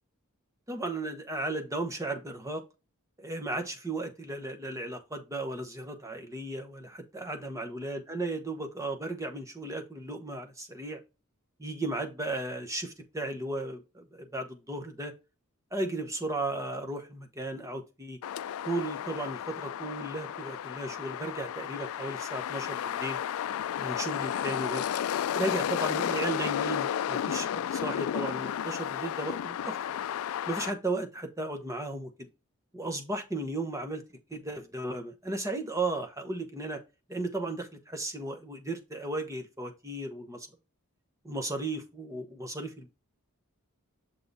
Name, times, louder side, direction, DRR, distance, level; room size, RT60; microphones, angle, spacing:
voice 1, 0.7-2.6 3.2-11.0 11.6-15.1 15.7-18.2 18.6-23.2 23.8-24.8 25.3-29.8 30.5-32.3 32.7-34.0 34.3-36.8 37.1-40.5 41.2-42.9, right 2 dB, 15° right, 1.1 m, -35 dB
sound 1, 18.2-30.7, left 9 dB, 70° left, 0.3 m, -33 dB
6.7 x 3.8 x 4.0 m
head